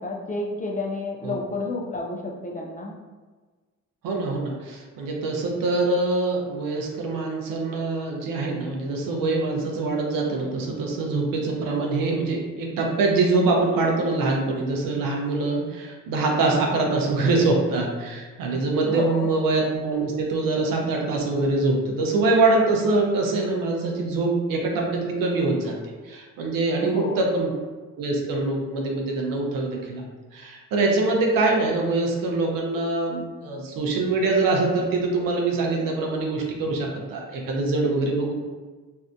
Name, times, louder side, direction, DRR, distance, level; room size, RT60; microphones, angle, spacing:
voice 1, 0.0-3.0 17.2-17.4 18.9-19.3 26.8-27.2, left 2 dB, 25° left, 0 dB, 0.4 m, -30 dB
voice 2, 4.0-27.5 28.0-30.0 30.3-38.3, right 3 dB, 80° right, 0 dB, 0.6 m, -24 dB
2.6 x 2.1 x 2.5 m, 1.4 s
cardioid pair, 75°, 33 cm